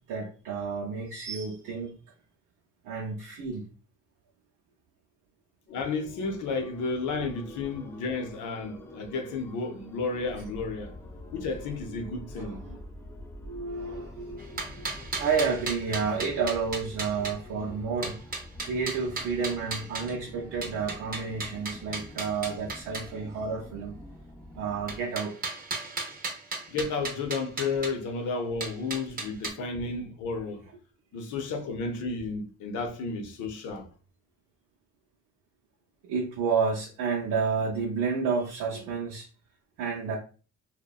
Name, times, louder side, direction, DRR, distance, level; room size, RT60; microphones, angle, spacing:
voice 1, 0.1-2.0 2.8-3.6 12.4-12.8 13.4-14.9 15.2-18.2 18.6-24.0 24.5-25.4 29.6-29.7 36.0-39.3 39.8-40.2, right 5 dB, 80° right, 0.6 m, -30 dB
voice 2, 5.7-10.9 11.3-12.6 26.7-30.7 31.1-33.9, left 4 dB, 80° left, 0.6 m, -32 dB
sound 1, 5.7-15.0, left 3 dB, 30° left, 0.7 m, -52 dB
sound 2, 6.2-25.0, left 1 dB, 10° left, 0.3 m, -46 dB
sound 3, 14.4-17.3 18.0-20.1 20.6-23.1 24.9-27.9 28.6-29.5, right 3 dB, 30° right, 0.6 m, -35 dB
2.8 x 2.1 x 2.3 m
cardioid pair, 90°, 30 cm